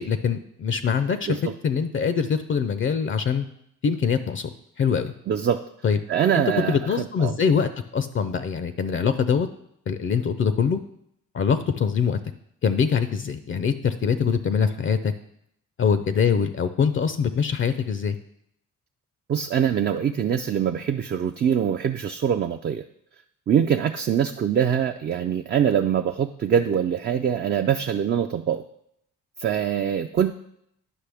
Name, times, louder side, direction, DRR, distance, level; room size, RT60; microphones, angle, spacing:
voice 1, 0.0-3.5 3.8-5.1 5.8-6.0 6.3-9.5 9.9-10.8 11.3-12.2 12.6-15.1 15.8-18.2, left 6 dB, 40° left, 11 dB, 0.5 m, -23 dB
voice 2, 5.3-5.7 6.1-7.4 19.3-22.9 23.5-28.6 29.4-30.3, right 8 dB, 35° right, 6 dB, 0.4 m, -23 dB
9.7 x 5.6 x 3.4 m, 0.75 s
cardioid pair, 90°, 30 cm